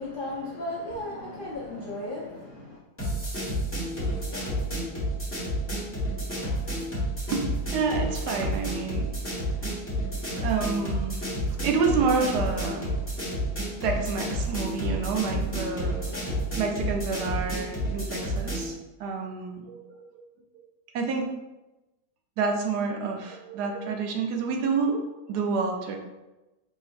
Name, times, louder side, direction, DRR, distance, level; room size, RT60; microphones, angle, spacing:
voice 1, 0.0-2.8, left 1 dB, 65° left, -5 dB, 0.5 m, -35 dB
sound 1, 3.0-18.7, equal, 10° left, 1.0 m, -30 dB
voice 2, 7.3-9.1 10.4-11.3 11.6-13.0 13.8-16.0 16.6-20.2 20.9-21.3 22.4-26.0, right 5 dB, 75° right, 2 dB, 1.2 m, -28 dB
4.9 x 3.0 x 2.5 m, 1.0 s
omnidirectional pair, 1.8 m